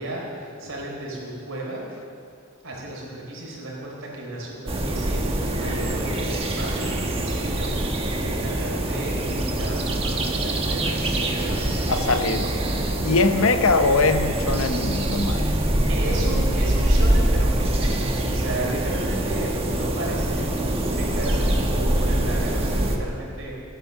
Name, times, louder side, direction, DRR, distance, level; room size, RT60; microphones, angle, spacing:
voice 1, 0.0-1.8 2.6-12.3 15.9-23.5, right 1 dB, 70° right, -3 dB, 4.3 m, -34 dB
sound 1, 4.7-23.0, right 1 dB, 30° right, 1.3 m, -24 dB
voice 2, 11.9-12.5 12.8-15.5, left 3 dB, 70° left, 8 dB, 0.9 m, -22 dB
16.0 x 9.6 x 6.7 m, 2.5 s
head